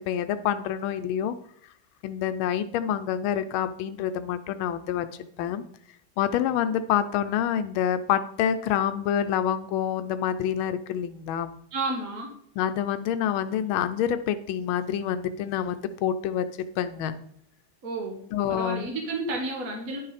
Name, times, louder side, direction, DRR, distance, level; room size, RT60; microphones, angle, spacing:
voice 1, 0.1-1.3 2.0-5.1 5.4-5.6 6.2-11.6 12.6-16.5 16.8-17.1 18.3-18.9, left 9 dB, 90° left, 10 dB, 1.4 m, -27 dB
voice 2, 11.7-12.3 17.8-20.0, right 2 dB, 45° right, 1 dB, 2.0 m, -31 dB
10.5 x 6.4 x 4.1 m, 0.67 s
omnidirectional pair, 2.2 m